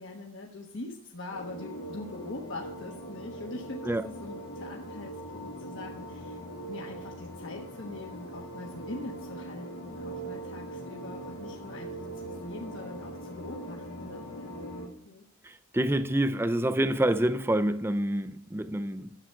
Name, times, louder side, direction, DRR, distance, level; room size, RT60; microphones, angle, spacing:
voice 1, 0.0-6.4 6.7-14.2 15.0-15.2, left 2 dB, 60° left, 1.3 m, -42 dB
sound 1, 1.3-14.9, right 1 dB, 80° left, 1.9 m, -41 dB
voice 2, 15.4-19.2, right 1 dB, 10° right, 0.5 m, -27 dB
11.5 x 8.2 x 4.5 m
head